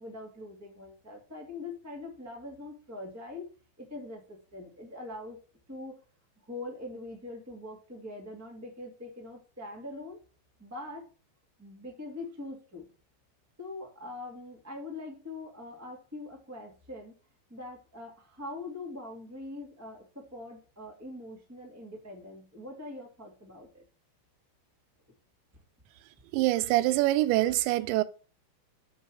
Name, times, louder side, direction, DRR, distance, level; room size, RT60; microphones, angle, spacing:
voice 1, 0.0-3.5 3.8-5.4 5.7-6.0 6.4-10.2 10.6-11.1 11.6-12.9 13.6-17.1 17.5-23.8, left 2 dB, 15° right, 0.6 m, -43 dB
voice 2, 26.3-28.0, right 17 dB, 90° right, 2.9 m, -25 dB
7.2 x 5.5 x 6.2 m
omnidirectional pair, 5.0 m